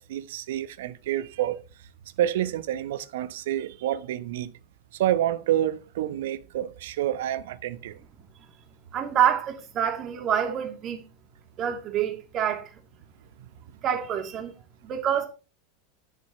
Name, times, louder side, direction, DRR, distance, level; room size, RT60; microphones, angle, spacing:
voice 1, 0.0-1.6 2.2-4.5 5.0-7.9, right 12 dB, 65° right, 1.0 m, -28 dB
voice 2, 8.9-11.0 11.6-12.7 13.8-14.5 14.8-15.3, right 9 dB, 40° right, 3.0 m, -26 dB
11.0 x 10.5 x 3.1 m
figure-of-eight pair, 85°, 0 cm